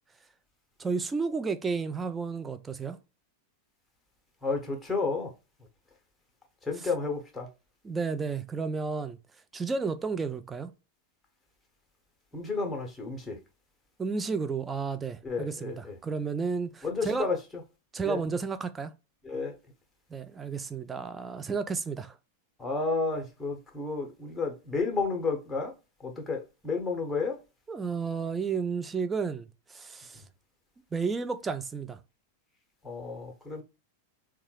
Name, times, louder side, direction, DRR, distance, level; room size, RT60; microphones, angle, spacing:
voice 1, 0.8-3.0 7.8-9.2 9.5-10.7 14.0-17.3 17.9-18.9 20.1-22.2 27.7-30.2 30.9-32.0, right 5 dB, 15° right, 0.4 m, -32 dB
voice 2, 4.4-5.3 6.6-7.5 12.3-13.4 15.2-15.9 16.8-17.6 18.0-18.2 19.2-19.5 22.6-25.7 26.0-27.4 30.1-30.2 32.8-33.6, left 4 dB, 10° left, 1.0 m, -31 dB
3.6 x 2.3 x 3.1 m
figure-of-eight pair, 90°, 0 cm